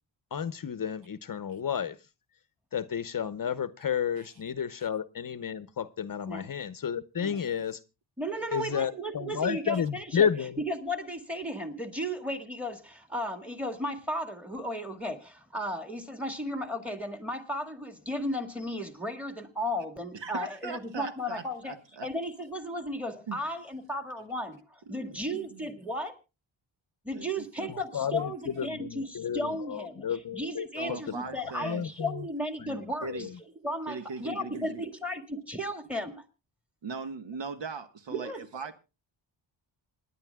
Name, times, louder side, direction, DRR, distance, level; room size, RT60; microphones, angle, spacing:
voice 1, 0.3-2.0 2.7-7.8 8.5-10.5 27.9-29.4 29.7-31.0 31.6-32.2 32.6-32.8 33.1-33.3, left 8 dB, 45° left, 0.8 m, -31 dB
voice 2, 8.2-10.3 10.7-21.7 22.0-26.2 27.0-33.1 33.6-36.2 38.1-38.5, equal, 5° right, 2.0 m, -35 dB
voice 3, 20.1-22.1 23.3-23.4 24.9-25.6 27.1-28.2 30.8-31.9 33.0-33.3 33.9-34.8 36.8-38.7, right 5 dB, 65° right, 1.4 m, -40 dB
27.0 x 10.5 x 2.3 m
wide cardioid pair, 120°, 46 cm